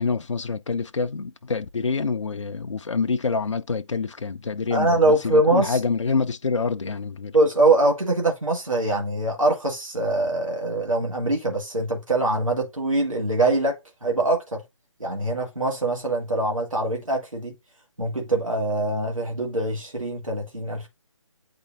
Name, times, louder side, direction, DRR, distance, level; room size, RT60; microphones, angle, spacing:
voice 1, 0.0-7.3, left 4 dB, 65° left, 0.5 m, -26 dB
voice 2, 4.7-5.8 7.3-14.6 15.0-17.5 18.0-20.9, right 2 dB, 85° right, 1.7 m, -23 dB
8.6 x 4.3 x 2.6 m
figure-of-eight pair, 150°, 17 cm